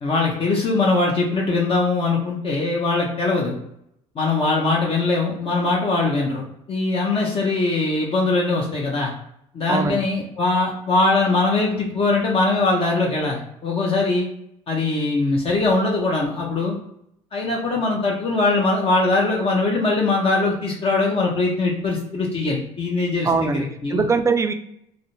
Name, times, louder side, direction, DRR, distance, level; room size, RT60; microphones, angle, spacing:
voice 1, 0.0-3.6 4.2-6.4 6.7-9.1 9.5-14.3 14.7-16.8 17.3-24.0, left 3 dB, 40° left, -2 dB, 0.6 m, -21 dB
voice 2, 9.7-10.1 23.2-23.6 23.9-24.5, right 4 dB, 20° right, 8 dB, 0.3 m, -21 dB
2.4 x 2.1 x 3.0 m, 0.75 s
supercardioid pair, 75°, 14 cm